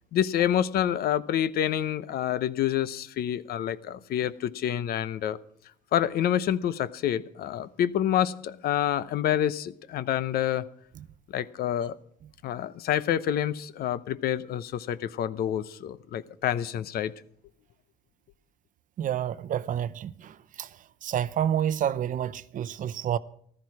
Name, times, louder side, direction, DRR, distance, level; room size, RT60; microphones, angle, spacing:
voice 1, 0.1-5.4 5.9-10.7 11.3-12.0 12.4-17.1, left 10 dB, 65° left, 0.8 m, -27 dB
voice 2, 19.0-20.7 21.0-23.2, right 10 dB, 50° right, 0.7 m, -29 dB
14.5 x 13.0 x 4.8 m
cardioid pair, 110°, 17 cm